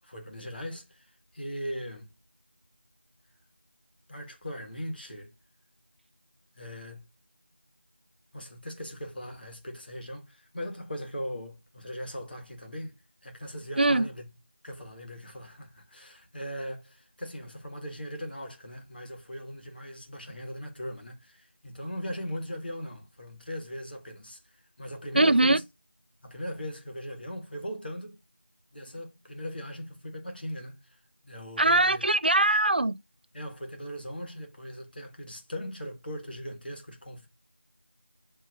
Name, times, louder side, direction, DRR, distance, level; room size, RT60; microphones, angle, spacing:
voice 1, 0.0-2.1 4.1-5.3 6.6-7.1 8.3-13.0 13.2-14.3 14.6-24.4 24.8-25.6 26.2-28.2 28.7-31.0 31.2-32.0 33.3-37.3, equal, 55° left, 1.2 m, -39 dB
voice 2, 25.1-25.6 31.6-33.0, right 2 dB, 55° right, 0.3 m, -22 dB
6.3 x 2.7 x 2.5 m
figure-of-eight pair, 175°, 6 cm